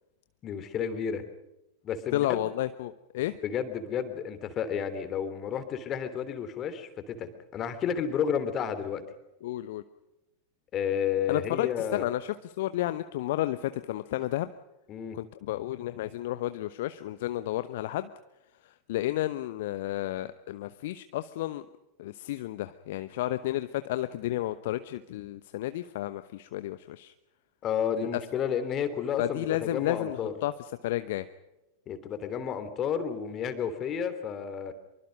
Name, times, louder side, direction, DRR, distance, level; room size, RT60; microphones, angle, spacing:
voice 1, 0.4-1.2 1.8-2.5 3.4-9.0 10.7-12.1 14.9-15.2 27.6-30.3 31.9-34.7, left 8 dB, 30° left, 11 dB, 3.2 m, -31 dB
voice 2, 2.1-3.4 9.4-9.8 11.3-14.5 15.1-18.1 18.6-21.7 22.0-27.1 29.2-30.5 30.8-31.3, left 15 dB, 55° left, 12 dB, 0.9 m, -32 dB
25.5 x 24.0 x 5.3 m, 0.94 s
figure-of-eight pair, 90°, 0 cm